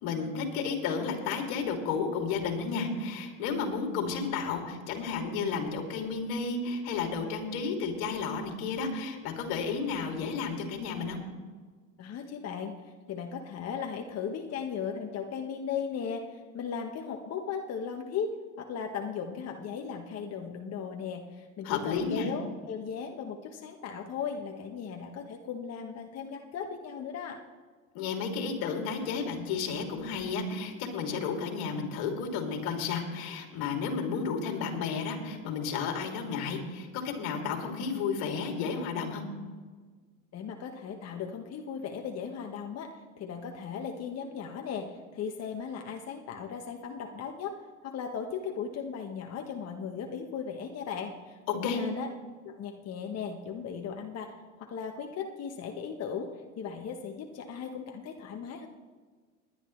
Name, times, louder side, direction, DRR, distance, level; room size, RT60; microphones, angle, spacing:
voice 1, 0.0-11.2 21.6-22.3 27.9-39.2 51.5-51.8, left 5 dB, 60° left, 2 dB, 2.9 m, -32 dB
voice 2, 12.0-27.4 40.3-47.5 47.8-52.1 52.4-56.3 56.6-58.7, left 6 dB, 40° left, 3 dB, 1.2 m, -37 dB
20.0 x 10.5 x 3.2 m, 1.4 s
supercardioid pair, 100°, 41 cm